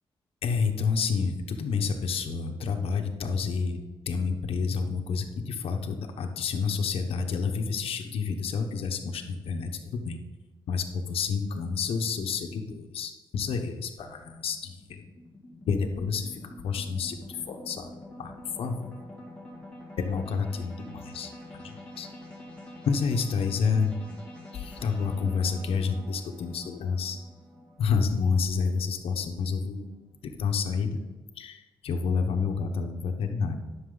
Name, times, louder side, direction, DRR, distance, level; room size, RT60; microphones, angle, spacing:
voice 1, 0.4-3.8 4.1-10.2 10.7-15.1 15.7-17.9 18.2-18.3 18.6-19.0 20.0-22.1 22.8-23.9 24.5-27.2 27.8-29.9 30.2-31.0 31.4-33.6, left 5 dB, 85° left, 4 dB, 1.0 m, -29 dB
sound 1, 13.4-29.8, left 1 dB, 10° left, 2.2 m, -46 dB
11.0 x 6.2 x 3.9 m, 1.3 s
wide cardioid pair, 175°, 10 cm